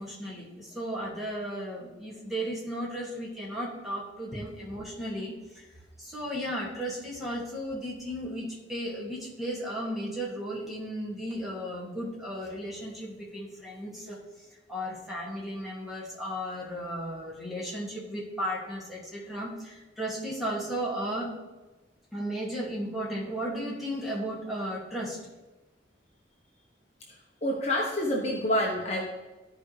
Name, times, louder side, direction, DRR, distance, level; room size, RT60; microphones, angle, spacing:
voice 1, 0.0-5.7 6.0-21.3 22.1-25.2, equal, ahead, -6 dB, 2.3 m, -35 dB
voice 2, 27.4-29.0, left 1 dB, 35° left, -2 dB, 1.1 m, -27 dB
13.5 x 4.9 x 3.4 m, 1.1 s
head